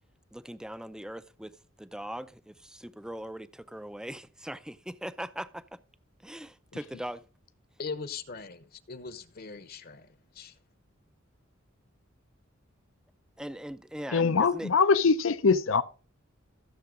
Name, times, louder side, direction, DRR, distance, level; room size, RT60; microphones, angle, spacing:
voice 1, 0.3-1.5 1.8-5.8 6.2-7.2 13.4-14.7, equal, 5° right, 0.5 m, -40 dB
voice 2, 7.8-10.5, left 5 dB, 50° left, 1.0 m, -40 dB
voice 3, 14.1-15.8, left 5 dB, 75° left, 0.6 m, -23 dB
14.5 x 7.0 x 3.8 m
head